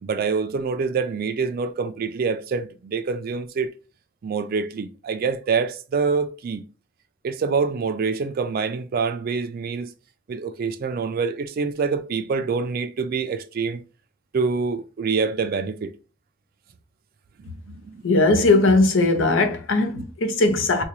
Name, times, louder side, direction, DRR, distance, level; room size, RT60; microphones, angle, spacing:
voice 1, 0.0-3.7 4.2-6.6 7.2-9.9 10.3-13.8 14.3-15.9 17.7-18.0 19.9-20.1, right 5 dB, 50° right, 0.3 m, -26 dB
voice 2, 18.0-20.8, left 2 dB, 85° left, 0.7 m, -19 dB
3.8 x 2.2 x 3.0 m
head